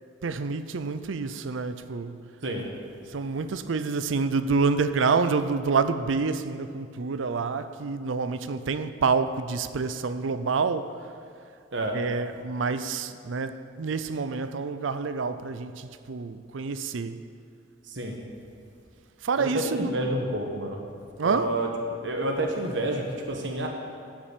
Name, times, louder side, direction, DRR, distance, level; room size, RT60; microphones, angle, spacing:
voice 1, 0.2-2.2 3.1-10.9 11.9-17.2 19.2-19.9 21.2-21.5, right 4 dB, 80° right, 0.5 m, -27 dB
voice 2, 19.4-20.8 21.2-21.7 22.0-23.7, right 1 dB, 65° right, 1.3 m, -29 dB
12.5 x 6.1 x 8.4 m
head